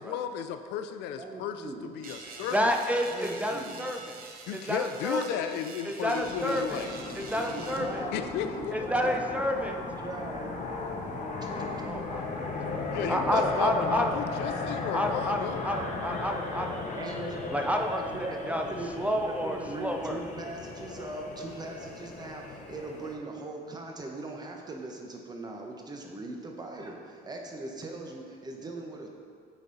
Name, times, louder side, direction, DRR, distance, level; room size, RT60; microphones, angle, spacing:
voice 1, 0.0-2.8 4.5-6.9 8.1-8.8 12.9-15.7, left 9 dB, 85° left, 9 dB, 0.4 m, -34 dB
voice 2, 1.2-1.9 3.1-4.2 6.2-6.9 7.5-9.2 9.7-10.5 10.8-10.9 13.0-14.2 16.9-29.1, right 2 dB, 25° right, 1 dB, 1.0 m, -40 dB
sound 1, 2.0-7.8, right 4 dB, 60° right, 0.9 m, -45 dB
voice 3, 2.5-4.2 4.5-5.4 5.9-6.8 7.2-8.0 8.7-9.8 11.8-12.5 12.7-14.2 14.9-17.0 17.5-18.0 18.5-18.6 19.0-20.2, equal, 10° right, 3 dB, 0.5 m, -30 dB
sound 2, 6.2-23.1, left 3 dB, 45° left, 1.0 m, -36 dB
9.1 x 4.1 x 3.9 m, 2.2 s
cardioid pair, 110°, 17 cm